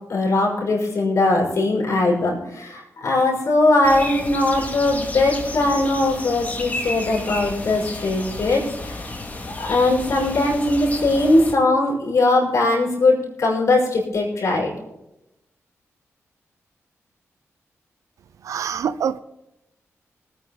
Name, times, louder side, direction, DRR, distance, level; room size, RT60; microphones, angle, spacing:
voice 1, 0.1-9.0 9.6-14.7, left 2 dB, 70° left, 5.2 m, -20 dB
sound 1, 3.8-11.5, left 2 dB, 30° left, 2.3 m, -32 dB
voice 2, 18.4-19.2, right 8 dB, 85° right, 0.5 m, -25 dB
20.0 x 8.9 x 4.1 m
cardioid pair, 75°, 5 cm